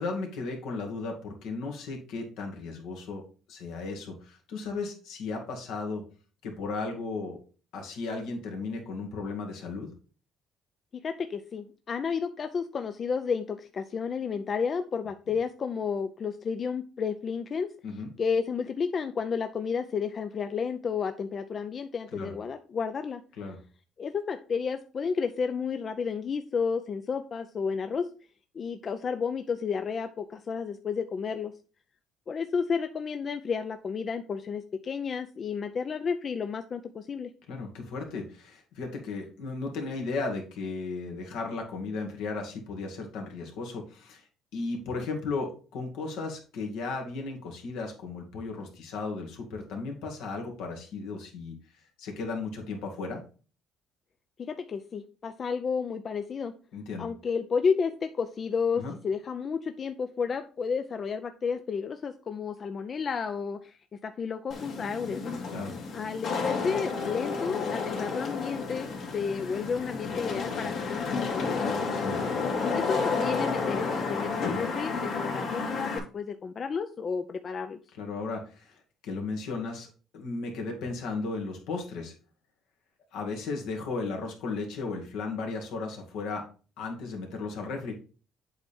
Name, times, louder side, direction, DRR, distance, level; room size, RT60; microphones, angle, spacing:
voice 1, 0.0-6.0 6.4-7.4 7.7-9.9 17.8-18.1 22.1-22.3 23.4-23.6 37.5-44.2 44.5-51.5 52.0-53.2 56.7-57.1 58.7-58.9 65.5-65.8 71.9-72.4 78.0-82.1 83.1-86.4 86.8-88.0, left 3 dB, 80° left, 2 dB, 1.9 m, -35 dB
voice 2, 10.9-17.7 18.2-23.2 24.0-28.1 28.5-31.5 32.3-37.3 54.4-56.5 57.0-65.2 65.9-71.9 72.7-77.8, left 6 dB, 40° left, 8 dB, 0.5 m, -31 dB
Wind / Rain, 64.5-76.0, left 4 dB, 60° left, 1.9 m, -31 dB
8.0 x 3.5 x 4.2 m, 0.37 s
cardioid pair, 95°, 0 cm